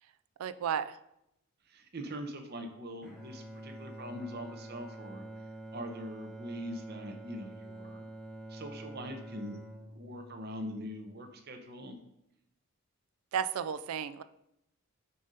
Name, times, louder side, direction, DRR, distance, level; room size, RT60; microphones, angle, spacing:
voice 1, 0.4-1.0 13.3-14.2, right 8 dB, 75° right, 13 dB, 0.3 m, -33 dB
voice 2, 1.7-5.2 5.7-8.0 8.5-9.6 9.9-12.0, equal, 45° right, 5 dB, 0.8 m, -42 dB
Bowed string instrument, 3.0-11.2, right 1 dB, ahead, 0.7 m, -47 dB
6.6 x 2.8 x 5.1 m, 0.80 s
head